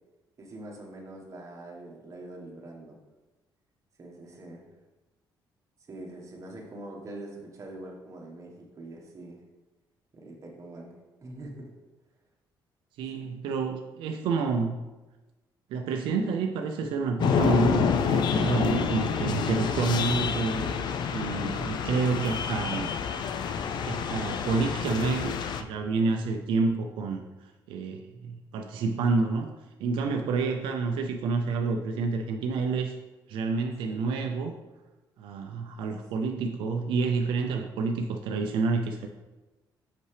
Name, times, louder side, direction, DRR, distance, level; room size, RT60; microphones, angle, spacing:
voice 1, 0.4-3.0 4.0-4.7 5.9-9.4 10.1-11.7 13.1-13.2 33.9-34.0 35.8-36.0, right 1 dB, 40° right, 0 dB, 1.4 m, -44 dB
voice 2, 13.0-14.8 15.7-20.7 21.1-22.9 23.8-25.3 25.7-29.5 29.8-33.0 33.3-34.5 35.2-39.1, right 4 dB, 90° right, 3 dB, 0.5 m, -29 dB
sound 1, 17.2-25.6, left 6 dB, 65° left, 0.4 m, -28 dB
5.9 x 5.4 x 3.3 m, 1.1 s
cardioid pair, 95°, 8 cm